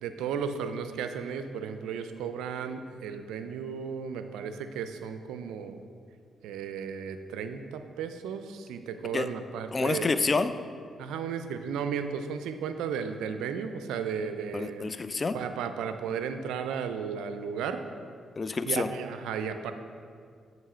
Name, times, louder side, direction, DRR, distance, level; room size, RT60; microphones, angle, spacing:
voice 1, 0.0-5.8 6.4-10.1 11.0-14.8 15.3-17.8 18.7-19.7, right 7 dB, 85° right, 8 dB, 0.3 m, -34 dB
voice 2, 9.7-10.5 14.5-15.4 18.4-18.9, left 4 dB, 40° left, 11 dB, 0.3 m, -28 dB
7.6 x 3.0 x 5.5 m, 2.2 s
supercardioid pair, 50°, 0 cm